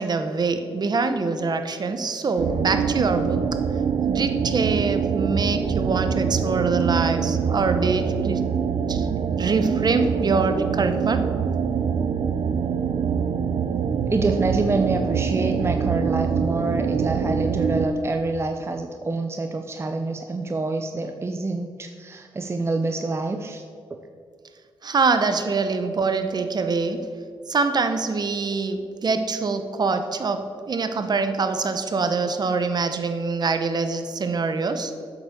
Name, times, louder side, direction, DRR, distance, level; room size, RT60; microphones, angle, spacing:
voice 1, 0.0-3.5 4.1-8.4 8.9-9.1 9.4-11.3 24.8-27.1 27.5-35.0, right 4 dB, 45° right, 8 dB, 0.9 m, -24 dB
sound 1, 2.4-17.9, right 6 dB, 65° right, 0.6 m, -24 dB
voice 2, 14.1-23.6, right 3 dB, 25° right, 5 dB, 0.6 m, -27 dB
8.1 x 7.1 x 7.0 m, 2.3 s
cardioid pair, 75°, 9 cm